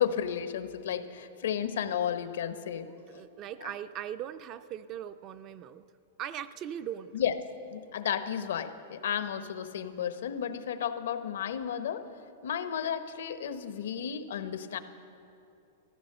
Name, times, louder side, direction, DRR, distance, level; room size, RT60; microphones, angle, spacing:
voice 1, 0.0-3.2 3.6-3.7 7.1-7.3 7.7-12.1 12.4-14.8, left 9 dB, 85° left, 10 dB, 0.9 m, -33 dB
voice 2, 3.1-5.8 6.2-7.1, right 10 dB, 30° right, 12 dB, 0.3 m, -39 dB
14.5 x 14.0 x 6.7 m, 2.7 s
supercardioid pair, 160°, 0 cm